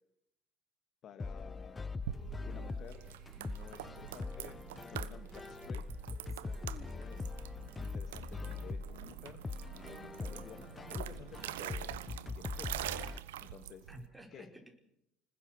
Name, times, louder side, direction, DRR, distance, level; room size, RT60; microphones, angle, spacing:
voice 1, 1.0-1.9 2.4-3.0 3.3-5.9 6.6-7.3 7.8-9.4 9.7-12.0 12.4-12.8 13.4-13.9 14.3-14.5, left 8 dB, 50° left, 9 dB, 2.0 m, -53 dB
sound 1, 1.2-13.2, left 4 dB, 20° left, 0.8 m, -42 dB
sound 2, 2.0-14.1, right 13 dB, 75° right, 1.0 m, -45 dB
sound 3, 2.1-3.5 6.1-7.3, right 5 dB, 45° right, 5.6 m, -57 dB
voice 2, 6.2-6.8 13.4-13.5 13.9-14.7, right 1 dB, 5° right, 2 dB, 4.9 m, -54 dB
26.0 x 20.5 x 6.4 m, 0.79 s
hypercardioid pair, 65°, 0 cm